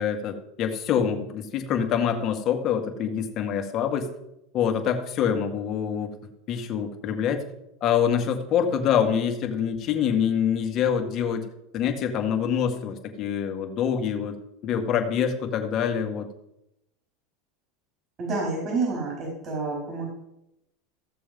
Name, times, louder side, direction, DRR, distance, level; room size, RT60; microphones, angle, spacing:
voice 1, 0.0-4.1 4.5-6.1 6.5-7.4 7.8-11.4 11.7-14.4 14.6-16.3, left 8 dB, 40° left, 4 dB, 2.0 m, -25 dB
voice 2, 18.2-20.1, right 3 dB, 40° right, -2 dB, 4.9 m, -28 dB
15.0 x 6.9 x 5.4 m, 0.85 s
supercardioid pair, 125°, 0 cm